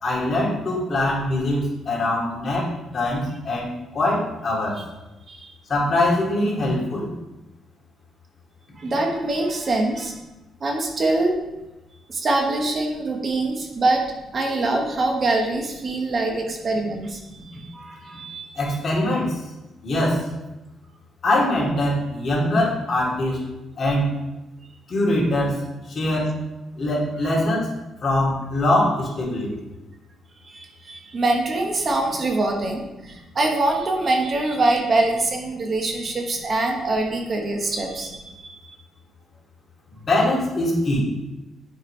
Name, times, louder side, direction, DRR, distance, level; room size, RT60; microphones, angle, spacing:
voice 1, 0.0-4.8 5.7-7.1 18.6-19.3 19.8-20.2 21.2-23.4 23.8-24.1 24.9-25.6 25.9-26.3 26.8-27.7 28.0-29.5 40.1-41.0, left 1 dB, 45° left, -4 dB, 2.2 m, -22 dB
voice 2, 8.8-10.1 10.6-11.4 12.1-14.0 14.3-18.5 27.2-27.3 30.4-38.8, right 2 dB, 40° right, 2 dB, 1.0 m, -24 dB
7.9 x 4.8 x 3.2 m, 1.0 s
cardioid pair, 90°, 0 cm